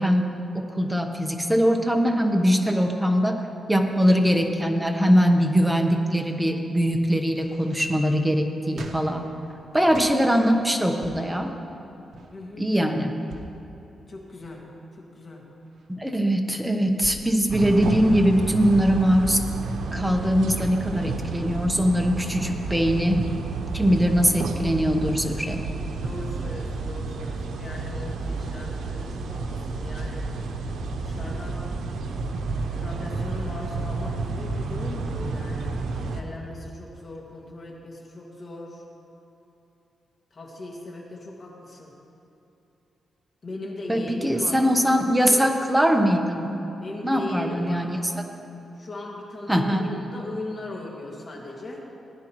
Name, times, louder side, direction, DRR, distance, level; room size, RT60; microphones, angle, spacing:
voice 1, 0.0-9.3 9.7-11.5 12.6-13.2 15.9-19.4 19.9-23.2 23.7-25.6 43.9-46.6 47.0-48.0 49.5-49.8, equal, 5° right, 4 dB, 1.0 m, -22 dB
sound 1, 7.4-10.2 10.8-11.4 12.0-12.3 13.1-13.6 14.2-14.8 15.3-17.3 18.1-18.2, right 2 dB, 65° right, 1.0 m, -42 dB
voice 2, 12.3-12.7 14.1-14.6 15.0-15.4 25.9-30.3 31.0-31.7 32.7-38.8 40.3-41.9 43.4-44.9 45.2-45.4 46.8-47.8 48.1-48.3 48.8-51.8, left 2 dB, 40° left, -2 dB, 2.1 m, -39 dB
sound 2, 17.5-36.2, right 3 dB, 90° right, 0.8 m, -31 dB
18.0 x 10.0 x 3.1 m, 2.9 s
cardioid pair, 105°, 0 cm